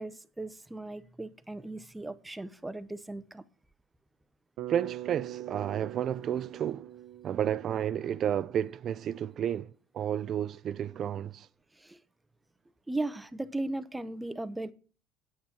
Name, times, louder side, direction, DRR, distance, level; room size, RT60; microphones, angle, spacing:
voice 1, 0.0-3.4 11.8-12.0 12.9-14.7, right 2 dB, 10° right, 0.9 m, -37 dB
Bass guitar, 4.6-8.7, right 13 dB, 65° right, 0.9 m, -43 dB
voice 2, 4.7-6.9 7.2-11.5, right 9 dB, 50° right, 0.5 m, -31 dB
9.5 x 8.9 x 5.9 m
supercardioid pair, 105°, 0 cm